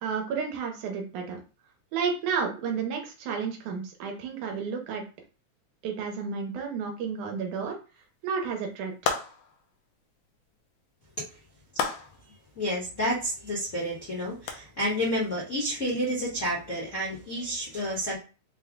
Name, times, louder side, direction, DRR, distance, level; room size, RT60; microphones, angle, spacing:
voice 1, 0.0-1.4 1.9-5.0 5.8-7.8 8.2-9.1, right 6 dB, 85° right, 3 dB, 2.4 m, -31 dB
sound 1, 9.0-9.6 11.8-12.3 14.5-14.6, left 6 dB, 75° left, 1.8 m, -30 dB
voice 2, 12.5-18.1, equal, 45° left, -7 dB, 0.9 m, -30 dB
5.7 x 2.2 x 3.6 m, 0.34 s
omnidirectional pair, 3.5 m